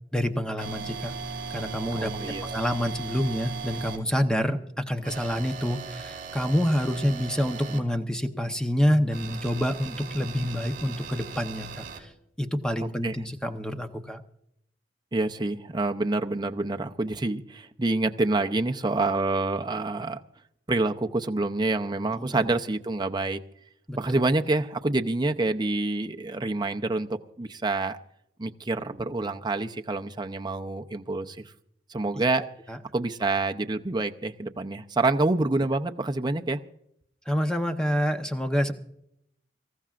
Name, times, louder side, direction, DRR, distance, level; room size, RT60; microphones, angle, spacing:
voice 1, 0.1-1.1 1.5-12.1 12.4-14.2 22.2-22.3 23.9-24.2 32.7-32.8 37.3-38.7, equal, 5° left, 6 dB, 0.9 m, -27 dB
sound 1, 0.6-4.0 5.0-7.8 9.1-12.0, right 5 dB, 50° right, 3.7 m, -38 dB
voice 2, 1.9-2.4 12.8-13.2 15.1-20.2 20.7-23.4 24.0-28.0 28.4-31.5 31.9-32.5 32.9-36.6, right 2 dB, 25° right, 5 dB, 0.7 m, -27 dB
25.0 x 14.5 x 2.5 m, 0.75 s
head